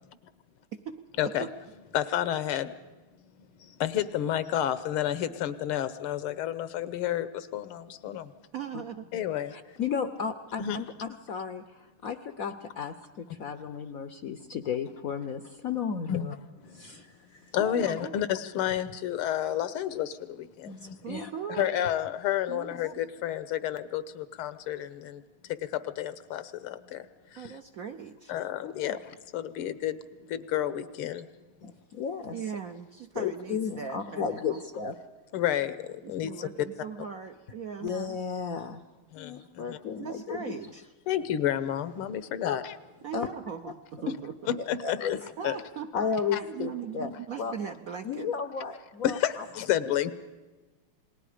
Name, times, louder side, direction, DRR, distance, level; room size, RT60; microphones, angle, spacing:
voice 1, 0.7-1.5 8.5-9.1 17.6-18.2 21.0-22.0 22.5-22.7 27.4-28.4 32.3-34.6 36.0-38.0 40.0-40.9 43.0-44.4 45.4-45.9 46.4-48.3, right 7 dB, 65° right, 6 dB, 0.9 m, -39 dB
voice 2, 1.9-2.7 3.8-8.3 9.1-9.5 10.6-10.8 16.1-16.4 17.5-21.0 21.5-25.2 26.0-27.0 28.3-29.0 29.3-30.0 30.3-31.2 35.3-35.8 36.1-36.5 39.1-39.3 39.7-39.8 41.1-42.7 44.7-45.6 46.3-46.4 47.0-47.1 49.0-50.1, left 11 dB, 85° left, 15 dB, 1.8 m, -30 dB
voice 3, 9.5-16.3 16.7-17.5 20.6-21.3 27.4-27.5 28.6-29.0 31.6-32.4 33.1-34.9 37.8-38.8 39.2-40.6 42.4-42.6 43.1-43.3 43.7-43.8 44.6-45.2 45.9-47.1 47.4-47.6 48.0-49.5 49.8-49.9, left 6 dB, 65° left, 11 dB, 0.8 m, -34 dB
28.0 x 20.0 x 5.0 m, 1.2 s
omnidirectional pair, 2.3 m